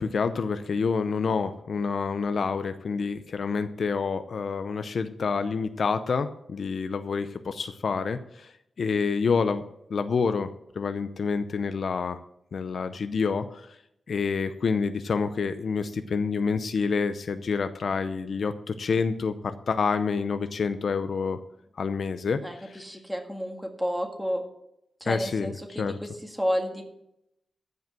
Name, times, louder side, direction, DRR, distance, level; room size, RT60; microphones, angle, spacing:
voice 1, 0.0-8.5 8.8-9.6 9.9-10.5 10.8-12.2 12.5-13.7 14.1-21.4 21.8-22.8 25.1-26.0, left 5 dB, 60° left, 10 dB, 0.6 m, -28 dB
voice 2, 22.4-24.4 25.0-26.8, equal, ahead, 3 dB, 1.9 m, -31 dB
14.0 x 5.5 x 7.6 m, 0.80 s
wide cardioid pair, 135°, 0 cm